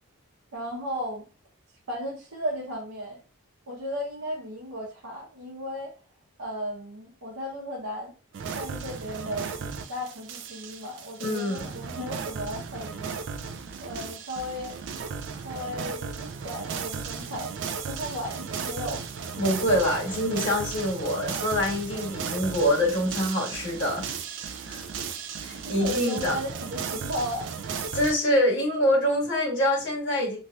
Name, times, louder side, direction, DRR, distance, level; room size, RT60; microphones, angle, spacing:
voice 1, 0.5-1.2 1.9-3.2 3.7-5.9 6.4-8.1 8.5-13.1 13.8-14.8 15.4-17.5 17.9-19.1 25.5-27.5, equal, 80° right, 0.8 m, -35 dB
sound 1, 8.3-28.1, right 6 dB, 55° right, 0.3 m, -35 dB
voice 2, 11.2-11.7 19.4-24.1 24.4-24.8 25.4-26.4 27.9-30.4, left 1 dB, 55° left, 1.5 m, -25 dB
3.1 x 2.3 x 2.6 m
head